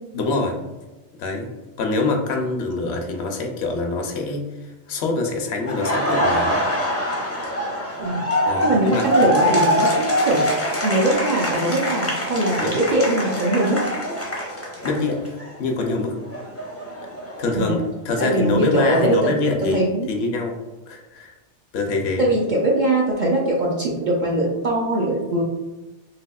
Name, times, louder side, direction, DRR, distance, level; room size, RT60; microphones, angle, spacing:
voice 1, 0.1-0.6 1.2-1.5 1.8-6.6 8.5-9.2 12.6-12.8 14.8-15.3 15.6-16.1 17.4-19.8 20.1-20.6 20.9-21.3 21.7-22.3, left 3 dB, 70° left, 3 dB, 0.8 m, -24 dB
Laughter, 5.7-15.5 15.8-17.8, equal, 20° left, 0.4 m, -24 dB
voice 2, 8.6-10.5 10.8-13.8 17.5-17.8 18.2-19.3 19.6-20.1 22.2-25.4, right 1 dB, 60° right, -3 dB, 0.5 m, -21 dB
3.4 x 2.7 x 2.2 m, 1.1 s
omnidirectional pair, 1.2 m